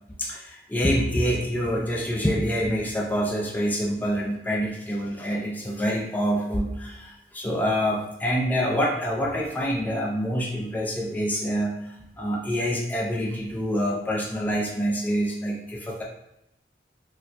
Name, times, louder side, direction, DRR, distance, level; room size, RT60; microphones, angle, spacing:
voice 1, 0.2-11.8 12.2-16.0, equal, 10° left, -2 dB, 0.3 m, -26 dB
4.1 x 2.2 x 2.4 m, 0.81 s
head